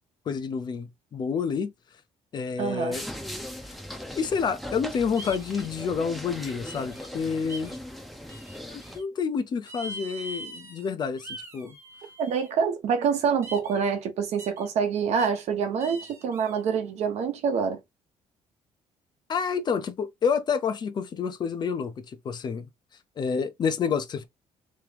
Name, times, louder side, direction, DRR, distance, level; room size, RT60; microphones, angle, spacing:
voice 1, 0.3-1.7 2.3-3.1 4.2-7.7 8.7-11.8 19.3-22.7 23.2-24.2, left 6 dB, 35° left, 0.6 m, -29 dB
voice 2, 2.6-3.0 12.2-17.8, right 6 dB, 60° right, 1.0 m, -26 dB
sound 1, 2.9-9.0, equal, ahead, 0.7 m, -39 dB
sound 2, 5.2-5.7 6.6-7.1 7.5-7.8 8.3-9.0 9.7-10.9 11.2-12.5 13.4-13.8 14.4-14.7 15.2-15.4 15.8-16.6, right 1 dB, 20° right, 1.0 m, -42 dB
3.5 x 3.2 x 3.3 m
cardioid pair, 165°, 12 cm